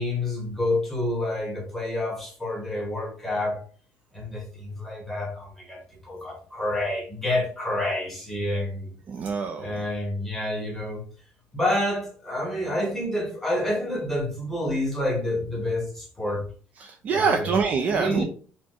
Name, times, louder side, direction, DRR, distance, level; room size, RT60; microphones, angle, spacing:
voice 1, 0.0-3.7 4.1-8.9 9.6-11.1 11.5-16.5 17.1-17.5 17.9-18.2, left 1 dB, 5° left, 1.2 m, -28 dB
voice 2, 9.1-9.9 16.8-18.2, right 5 dB, 35° right, 0.4 m, -25 dB
4.3 x 2.1 x 4.4 m
cardioid pair, 175°, 5 cm